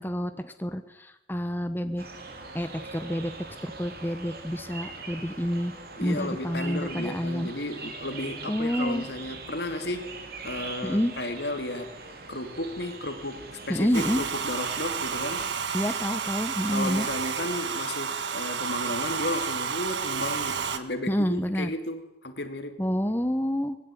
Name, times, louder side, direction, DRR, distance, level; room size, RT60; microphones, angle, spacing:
voice 1, 0.0-2.0 2.5-3.3 3.6-5.7 6.0-7.5 8.5-9.0 10.8-11.1 13.7-14.2 15.7-17.1 21.1-21.7 22.8-23.8, equal, 10° left, 9 dB, 1.1 m, -28 dB
sound 1, 2.0-15.5, right 3 dB, 55° right, 3.3 m, -42 dB
voice 2, 6.0-11.9 12.3-15.5 16.7-22.8, left 1 dB, 70° left, 7 dB, 2.7 m, -34 dB
Domestic sounds home sounds, 13.9-20.8, right 6 dB, 85° right, 1.5 m, -31 dB
20.0 x 17.0 x 9.4 m, 0.92 s
head